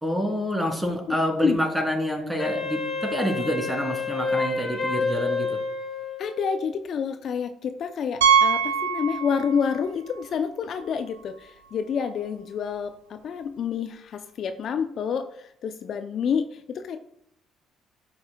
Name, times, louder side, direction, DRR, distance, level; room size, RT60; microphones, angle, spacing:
voice 1, 0.0-5.5, equal, 10° right, 1 dB, 3.0 m, -27 dB
Wind instrument woodwind instrument, 2.4-6.6, left 4 dB, 35° left, 2.7 m, -29 dB
voice 2, 6.2-17.0, left 6 dB, 55° left, 8 dB, 0.5 m, -28 dB
Piano, 8.2-9.8 10.1-10.2 10.8-10.9 11.2-11.3 13.3-13.4, right 6 dB, 85° right, 0.5 m, -22 dB
12.5 x 5.5 x 2.3 m, 0.70 s
hypercardioid pair, 50°, 0 cm